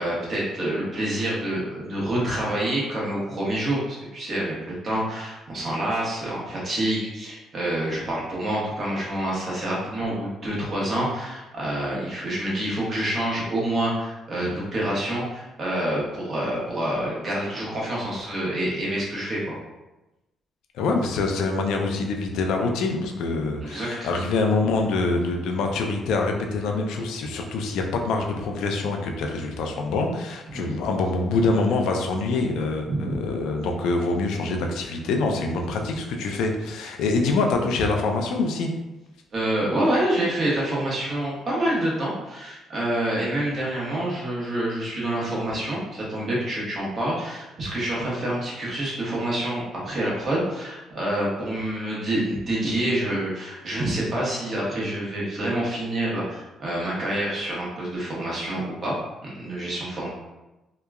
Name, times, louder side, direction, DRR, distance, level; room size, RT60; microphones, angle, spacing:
voice 1, 0.0-4.5 4.8-19.5 23.6-24.1 30.5-30.7 32.9-33.1 39.3-59.0 59.2-60.1, right 1 dB, 40° right, -6 dB, 1.0 m, -27 dB
voice 2, 20.7-38.7, left 3 dB, 90° left, 3 dB, 0.3 m, -25 dB
2.8 x 2.3 x 2.2 m, 1.0 s
cardioid pair, 125°, 0 cm